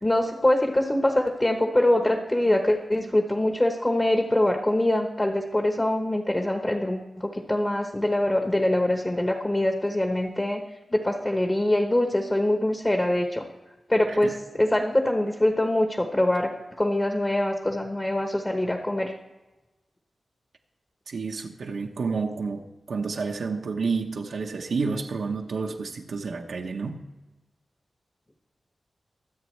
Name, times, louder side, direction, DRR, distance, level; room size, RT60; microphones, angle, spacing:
voice 1, 0.0-10.6 10.9-13.4 13.9-19.1, left 1 dB, 20° left, 3 dB, 1.1 m, -24 dB
voice 2, 21.1-27.0, right 4 dB, 75° right, 2 dB, 1.1 m, -30 dB
24.0 x 8.2 x 3.2 m, 1.1 s
wide cardioid pair, 155°, 0 cm